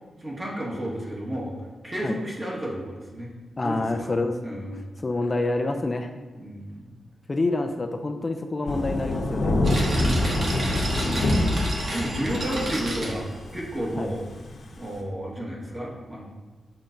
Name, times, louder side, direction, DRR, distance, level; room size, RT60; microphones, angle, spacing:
voice 1, 0.2-1.5 1.8-3.3 3.6-4.1 4.4-4.9 6.3-7.0 11.9-13.3 13.5-14.2 14.8-16.2, right 1 dB, 25° right, -3 dB, 1.5 m, -32 dB
voice 2, 3.6-4.4 5.0-6.1 7.3-9.6 14.0-14.1, left 2 dB, 30° left, 5 dB, 0.4 m, -27 dB
Thunder / Rain, 8.7-15.0, left 1 dB, 70° left, 1.2 m, -25 dB
sound 1, 9.6-14.0, right 1 dB, 55° right, 1.3 m, -32 dB
7.3 x 5.6 x 2.6 m, 1.3 s
cardioid pair, 95°, 0 cm